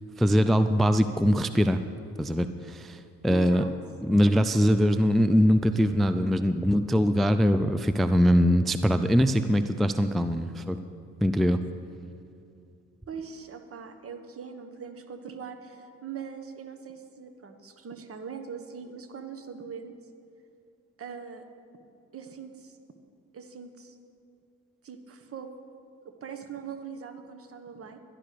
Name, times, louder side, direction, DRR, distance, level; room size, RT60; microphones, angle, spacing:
voice 1, 0.2-1.8 2.2-3.6 4.0-10.8 11.2-11.6, equal, ahead, 10 dB, 0.3 m, -22 dB
voice 2, 3.2-3.7 4.3-4.6 13.1-19.9 21.0-21.4 22.1-22.8 23.3-23.9 24.8-25.5 26.0-28.0, right 6 dB, 50° right, 7 dB, 1.2 m, -41 dB
11.5 x 11.5 x 5.0 m, 2.5 s
cardioid pair, 90°, 30 cm